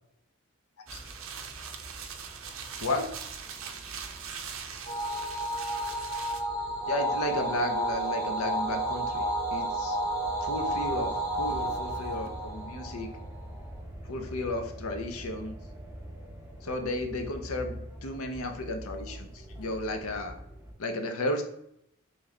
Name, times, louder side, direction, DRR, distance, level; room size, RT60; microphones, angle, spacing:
sound 1, 0.9-20.7, equal, 10° right, 0.5 m, -45 dB
sound 2, 0.9-6.4, right 7 dB, 70° right, 0.5 m, -41 dB
sound 3, 4.9-13.5, right 1 dB, 10° left, 0.9 m, -31 dB
voice 1, 6.9-9.3 9.5-10.0 10.4-13.1 14.1-15.6 16.6-19.3 19.6-20.3 20.8-21.4, left 2 dB, 80° left, 5 dB, 0.6 m, -33 dB
3.1 x 3.1 x 3.7 m, 0.75 s
head